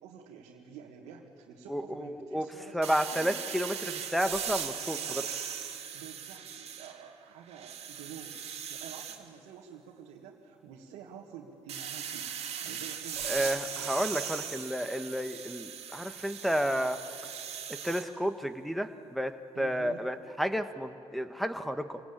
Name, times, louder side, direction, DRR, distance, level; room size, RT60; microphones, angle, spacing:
voice 1, 0.0-3.3 4.8-5.4 5.9-8.4 8.7-12.3 12.6-13.9 19.5-20.1, right 8 dB, 85° right, -1 dB, 1.8 m, -49 dB
voice 2, 1.7-2.5 2.7-5.2 13.2-17.0 17.7-22.0, equal, ahead, 9 dB, 1.5 m, -31 dB
sound 1, 2.8-7.1 7.5-9.2 11.7-18.1, right 8 dB, 65° right, 2.0 m, -39 dB
25.5 x 18.0 x 8.6 m, 2.6 s
supercardioid pair, 65°, 11 cm